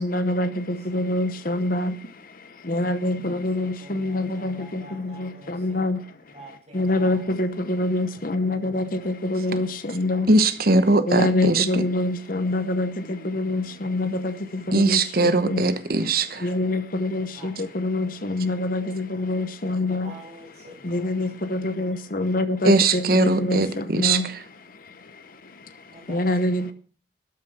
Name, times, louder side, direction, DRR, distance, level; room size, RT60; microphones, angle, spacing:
voice 1, 0.0-6.3 6.7-10.3 11.1-15.7 16.0-20.1 20.8-26.7, left 2 dB, 45° left, 0.9 m, -26 dB
voice 2, 2.7-5.9 6.3-7.2 8.2-9.2 13.7-13.9 17.3-17.7 18.0-18.1 20.0-21.4 25.9-26.3 26.6-26.7, right 1 dB, 35° right, 5.8 m, -47 dB
voice 3, 10.3-11.8 14.7-16.5 22.6-24.3, right 2 dB, 50° right, 1.0 m, -20 dB
13.0 x 9.2 x 6.3 m
head